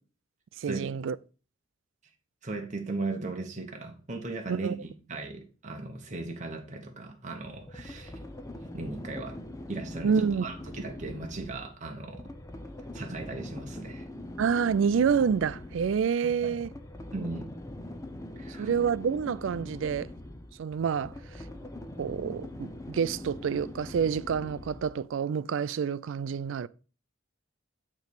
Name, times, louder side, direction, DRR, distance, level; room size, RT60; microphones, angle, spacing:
voice 1, 0.6-1.2 4.5-4.7 10.0-10.4 14.4-16.7 18.6-20.1 20.6-21.1 22.0-26.7, right 6 dB, 70° right, 0.3 m, -28 dB
voice 2, 2.4-8.2 8.7-9.4 9.7-12.3 12.9-14.1 16.2-16.6 17.1-17.5 18.4-18.7, right 3 dB, 40° right, 0.9 m, -37 dB
sound 1, 7.4-25.1, left 1 dB, 15° left, 0.6 m, -43 dB
9.0 x 3.1 x 5.2 m
head